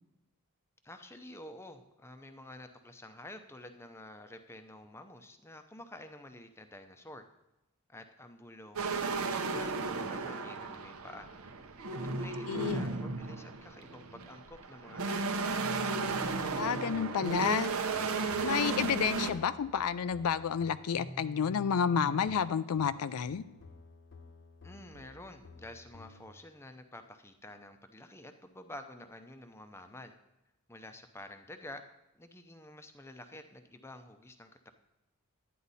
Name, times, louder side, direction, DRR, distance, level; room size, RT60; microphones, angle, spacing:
voice 1, 0.8-7.2 7.9-11.6 12.0-15.7 24.6-30.1 30.7-31.8 32.1-34.7, left 1 dB, 10° left, 7 dB, 0.6 m, -50 dB
sound 1, 8.8-19.3, right 4 dB, 70° right, 0.8 m, -34 dB
voice 2, 12.5-12.8 16.5-17.7 18.4-23.4, left 7 dB, 80° left, 13 dB, 0.4 m, -30 dB
sound 2, 15.6-26.3, equal, 55° left, 0.9 m, -50 dB
11.0 x 9.3 x 4.1 m, 0.95 s
head